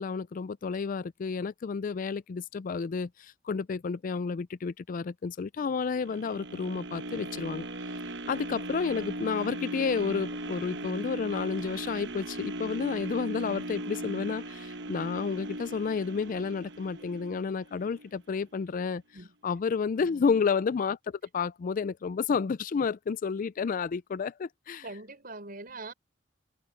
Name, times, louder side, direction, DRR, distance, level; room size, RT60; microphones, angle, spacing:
voice 1, 0.0-7.6 8.3-19.0 19.4-24.8, left 5 dB, 45° left, 0.4 m, -31 dB
sound 1, 6.0-18.1 18.6-18.7, right 1 dB, 65° right, 1.1 m, -38 dB
voice 2, 20.1-20.4 24.8-25.9, right 2 dB, 50° right, 5.9 m, -43 dB
head